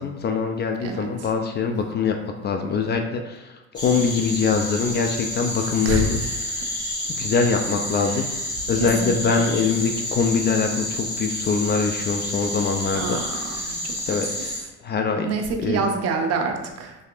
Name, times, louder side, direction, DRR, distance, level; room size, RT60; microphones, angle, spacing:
voice 1, 0.0-6.7 7.1-8.3 8.7-13.8 14.1-14.5 14.8-15.9, left 5 dB, 35° left, 4 dB, 0.4 m, -24 dB
sound 1, 3.7-14.6, left 1 dB, 15° left, 1.2 m, -30 dB
voice 2, 8.8-9.2 12.9-13.8 15.2-16.9, right 4 dB, 55° right, 4 dB, 0.6 m, -26 dB
3.4 x 3.2 x 2.4 m, 1.0 s
supercardioid pair, 95°, 31 cm